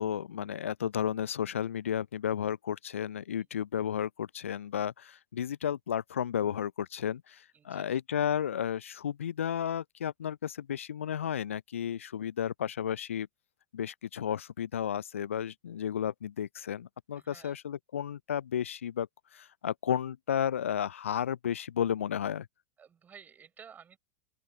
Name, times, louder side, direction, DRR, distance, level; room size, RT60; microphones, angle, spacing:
voice 1, 0.0-13.3 13.7-22.5, left 9 dB, 70° left, 0.6 m, -33 dB
voice 2, 7.5-8.0 17.2-17.6 22.8-24.0, right 7 dB, 25° right, 5.6 m, -54 dB
open air
figure-of-eight pair, 85°, 7 cm